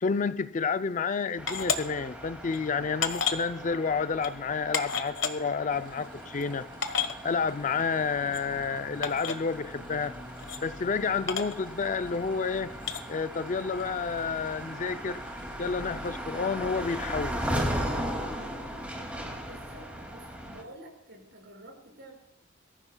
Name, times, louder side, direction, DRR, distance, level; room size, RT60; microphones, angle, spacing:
voice 1, 0.0-6.7 7.2-10.1 10.6-12.7 13.1-15.2 15.6-17.4, left 5 dB, 40° left, 0.5 m, -30 dB
sound 1, 1.4-20.6, equal, 5° right, 2.4 m, -38 dB
sound 2, 1.5-1.8 2.5-2.6 3.0-3.4 4.2-4.3 4.7-5.3 6.1-6.2 6.4-6.5 6.8-7.1 8.3-8.4 9.0-9.4 10.4-10.6 11.3-11.5 12.8-13.0, left 6 dB, 85° left, 1.2 m, -30 dB
sound 3, 5.7-17.5, equal, 25° right, 2.2 m, -50 dB
voice 2, 19.5-22.2, right 1 dB, 65° right, 5.6 m, -49 dB
23.5 x 14.5 x 2.3 m
head